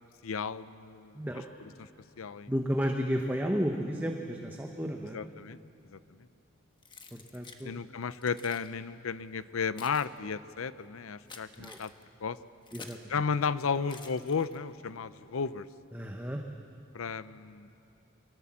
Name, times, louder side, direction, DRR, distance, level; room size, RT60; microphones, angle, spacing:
voice 1, 0.2-1.2 2.2-2.5 5.1-5.6 5.9-6.0 7.6-11.9 12.2-12.4 13.1-15.7 16.9-17.7, left 5 dB, 80° left, 15 dB, 0.6 m, -33 dB
voice 2, 2.5-5.2 7.1-7.7 11.6-11.8 12.7-13.1 15.9-16.4, equal, 10° right, 2 dB, 0.9 m, -32 dB
Keys jangling, 6.8-7.7 8.2-8.7 9.4-13.1 13.8-14.8, left 4 dB, 25° left, 1.2 m, -51 dB
23.5 x 18.5 x 7.4 m, 2.9 s
head